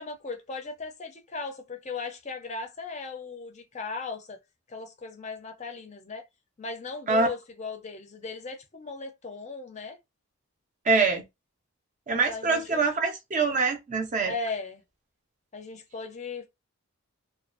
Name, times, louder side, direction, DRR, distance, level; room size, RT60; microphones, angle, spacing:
voice 1, 0.0-4.4 4.7-6.2 6.6-10.0 12.3-12.8 14.2-14.8 15.5-16.5, left 4 dB, 30° left, 0.4 m, -37 dB
voice 2, 10.8-11.2 12.1-14.3, right 4 dB, 35° right, 0.4 m, -24 dB
2.5 x 2.2 x 2.4 m
head